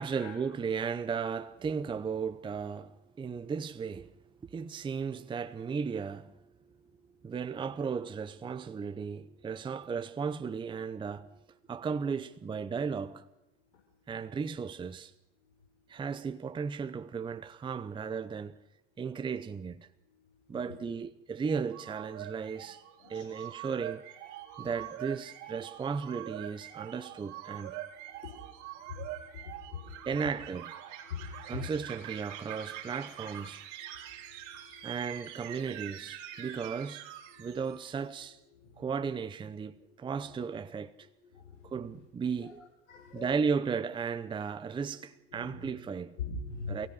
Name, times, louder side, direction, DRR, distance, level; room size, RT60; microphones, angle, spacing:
voice 1, 0.0-4.1 4.4-6.4 6.7-6.8 7.2-11.4 11.7-13.2 14.1-15.1 15.9-18.6 19.0-19.9 20.5-22.8 23.1-24.0 24.6-27.8 30.0-30.7 31.5-33.6 34.8-37.0 37.4-38.4 38.8-41.1 41.6-42.5 43.2-46.1 46.7-46.9, right 6 dB, 15° right, 0.8 m, -35 dB
voice 2, 20.1-20.6 22.6-22.7 23.0-23.4 24.4-24.7 27.5-30.1 31.0-31.7 33.8-35.3 36.3-36.8 37.3-37.8 38.2-39.2 39.7-40.5 41.0-42.0 42.3-42.5 42.9-43.5 44.9-46.9, left 5 dB, 85° left, 6.3 m, -46 dB
sound 1, 21.4-38.0, right 12 dB, 50° right, 4.6 m, -45 dB
28.5 x 16.5 x 6.5 m
hypercardioid pair, 115°, 37 cm